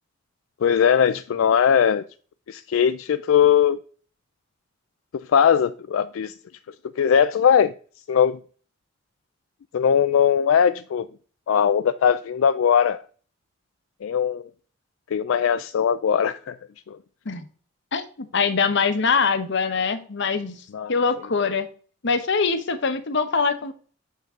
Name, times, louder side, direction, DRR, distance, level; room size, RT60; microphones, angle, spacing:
voice 1, 0.6-2.0 2.5-3.8 5.3-6.3 7.0-7.7 8.1-8.4 9.7-11.1 11.5-13.0 14.0-14.5 15.1-16.6 16.9-17.0 20.7-20.9, left 8 dB, 85° left, 0.4 m, -20 dB
voice 2, 17.9-20.6 20.9-21.7 22.0-23.7, left 5 dB, 65° left, 1.0 m, -23 dB
6.8 x 5.8 x 3.7 m
head